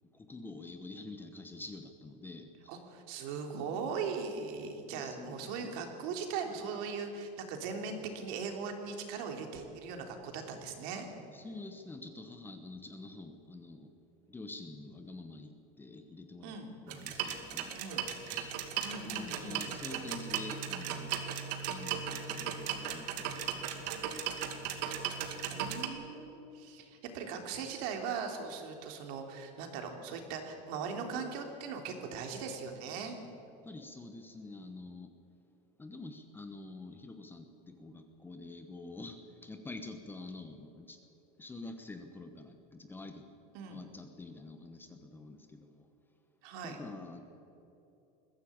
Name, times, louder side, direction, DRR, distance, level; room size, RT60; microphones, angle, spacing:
voice 1, 0.1-2.8 4.9-5.7 11.3-13.9 14.3-18.8 19.0-21.1 21.7-24.2 33.6-35.1 35.8-41.0 41.4-43.2 43.7-45.9 46.6-47.2, left 2 dB, 10° left, 6 dB, 1.1 m, -47 dB
voice 2, 2.7-11.1 16.4-16.7 17.8-18.1 18.8-19.7 25.5-33.2 43.5-43.8 46.4-46.8, right 5 dB, 65° right, 4 dB, 3.2 m, -39 dB
sound 1, 16.9-25.9, right 8 dB, 80° right, 2.4 m, -37 dB
21.0 x 15.0 x 8.7 m, 2.9 s
cardioid pair, 165°, 21 cm